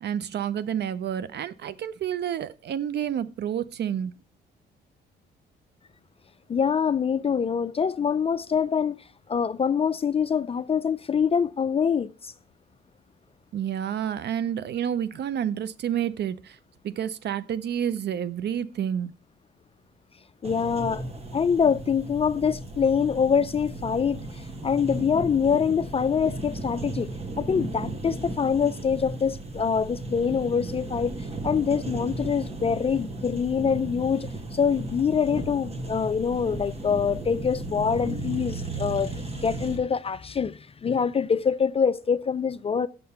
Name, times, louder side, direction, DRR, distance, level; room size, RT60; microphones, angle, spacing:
voice 1, 0.0-4.1 13.5-16.6 16.8-19.1, right 9 dB, 60° right, 0.5 m, -29 dB
voice 2, 6.5-9.0 9.3-12.3 20.4-21.0 21.3-42.9, left 6 dB, 30° left, 0.4 m, -25 dB
sound 1, 20.4-39.8, right 2 dB, 30° right, 1.4 m, -35 dB
6.7 x 6.6 x 5.6 m
cardioid pair, 90°, 20 cm